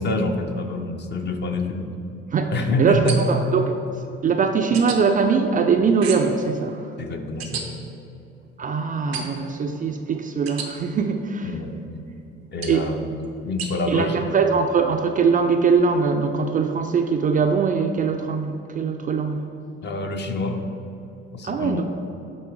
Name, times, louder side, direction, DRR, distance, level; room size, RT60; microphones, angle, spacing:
voice 1, 0.0-1.9 2.5-3.2 7.0-7.7 11.4-11.8 12.5-13.1 13.4-14.4 19.8-20.7 21.3-21.8, left 2 dB, 35° left, 4 dB, 0.7 m, -26 dB
voice 2, 2.3-6.9 8.6-11.6 12.7-12.9 13.9-19.5 21.4-21.8, right 5 dB, 25° right, 5 dB, 0.4 m, -22 dB
sound 1, 3.1-3.5 4.7-5.0 6.0-6.4 7.4-7.6 9.1-9.5 10.5-10.7 12.6-12.9 13.6-13.7, right 5 dB, 85° right, 0.6 m, -32 dB
8.4 x 3.2 x 4.6 m, 2.9 s
figure-of-eight pair, 50°, 30 cm